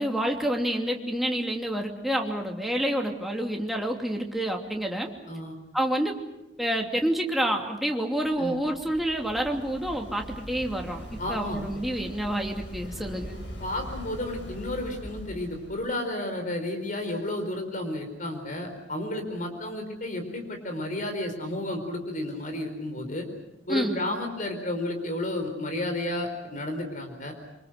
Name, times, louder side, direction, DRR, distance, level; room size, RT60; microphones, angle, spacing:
voice 1, 0.0-5.1 5.7-6.2 6.6-13.4 23.7-24.0, right 1 dB, ahead, 1 dB, 2.8 m, -28 dB
voice 2, 5.3-5.6 8.4-8.5 11.2-11.7 13.6-23.3 23.7-27.3, left 1 dB, 45° left, 5 dB, 4.6 m, -32 dB
Waves surf, 8.2-15.9, equal, 75° left, 7.3 m, -41 dB
27.5 x 25.5 x 6.7 m, 0.93 s
head